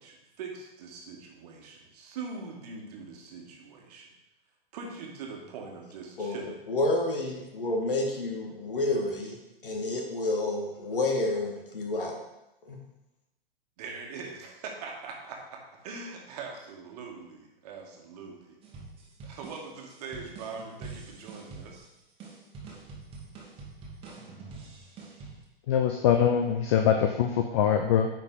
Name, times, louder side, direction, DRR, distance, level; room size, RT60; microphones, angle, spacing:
voice 1, 0.0-4.1 4.7-6.6 13.8-18.5 19.2-21.9, right 4 dB, 40° right, 0 dB, 1.7 m, -42 dB
voice 2, 6.2-12.2 12.7-12.8, left 2 dB, 60° left, 2 dB, 1.8 m, -30 dB
sound 1, 18.6-25.4, right 4 dB, 20° right, 1.5 m, -45 dB
voice 3, 25.7-28.1, left 8 dB, 30° left, 6 dB, 0.5 m, -23 dB
9.1 x 5.0 x 3.9 m, 0.92 s
figure-of-eight pair, 110°, 30 cm